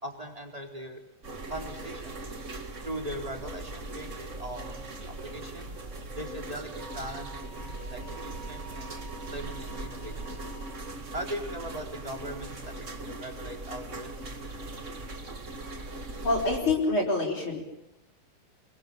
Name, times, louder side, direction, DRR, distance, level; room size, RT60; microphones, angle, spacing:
voice 1, 0.0-1.0 1.5-2.2 2.8-5.7 6.1-10.4 11.1-14.7, right 1 dB, 15° right, 3 dB, 4.2 m, -40 dB
sound 1, 1.2-16.6, right 2 dB, 35° right, 2.5 m, -40 dB
Wind instrument woodwind instrument, 6.8-10.8, right 2 dB, 20° left, 6.8 m, -49 dB
voice 2, 16.2-17.6, left 2 dB, 65° left, -1 dB, 5.6 m, -26 dB
28.5 x 22.5 x 8.9 m, 0.87 s
omnidirectional pair, 2.4 m